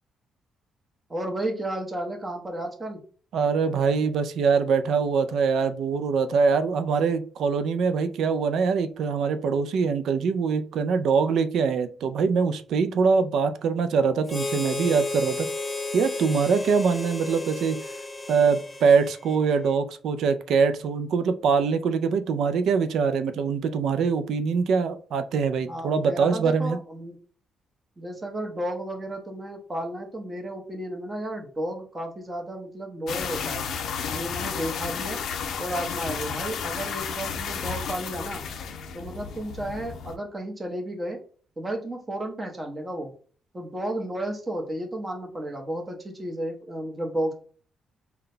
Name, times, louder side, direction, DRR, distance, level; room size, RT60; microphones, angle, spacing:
voice 1, 1.1-3.0 25.7-27.1 28.0-33.6 34.1-35.2 35.6-38.4 38.9-41.2 41.6-43.1 43.5-47.3, right 1 dB, 25° right, 2 dB, 1.0 m, -32 dB
voice 2, 3.3-15.5 15.9-17.8 18.3-26.8, right 5 dB, 70° right, 10 dB, 0.4 m, -23 dB
Harmonica, 14.3-19.8, left 2 dB, 20° left, 0.6 m, -33 dB
sound 1, 33.1-40.2, left 6 dB, 65° left, 0.5 m, -32 dB
3.8 x 2.3 x 3.8 m, 0.42 s
cardioid pair, 90°, 0 cm